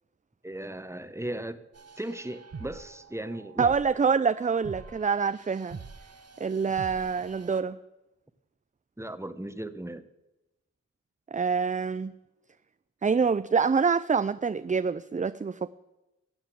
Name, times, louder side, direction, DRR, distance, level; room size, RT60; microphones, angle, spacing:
voice 1, 0.4-1.6 2.0-3.7 9.0-10.0, right 1 dB, 10° right, 12 dB, 1.0 m, -37 dB
sound 1, 1.7-7.6, right 5 dB, 55° right, 0.9 m, -45 dB
voice 2, 3.6-5.8 6.4-7.8 11.3-12.1 13.0-15.7, right 5 dB, 25° right, 14 dB, 0.4 m, -26 dB
14.0 x 8.1 x 7.6 m, 1.0 s
cardioid pair, 45°, 31 cm